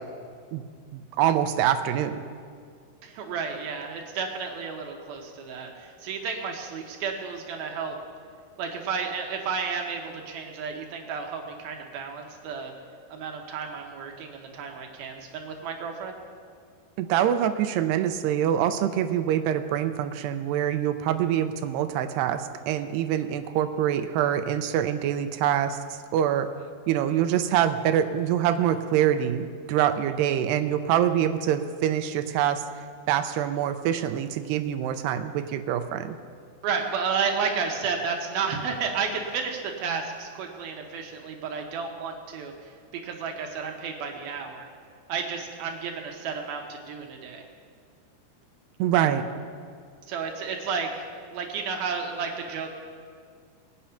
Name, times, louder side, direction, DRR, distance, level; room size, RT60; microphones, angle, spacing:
voice 1, 0.9-2.2 17.0-26.5 26.9-32.6 33.1-36.2 48.8-49.3, right 10 dB, 90° right, 8 dB, 2.7 m, -25 dB
voice 2, 3.0-8.0 8.6-12.7 13.1-16.2 36.6-44.7 45.1-47.4 50.1-52.7, right 5 dB, 70° right, 2 dB, 2.8 m, -32 dB
21.0 x 8.8 x 5.7 m, 2.1 s
omnidirectional pair, 4.7 m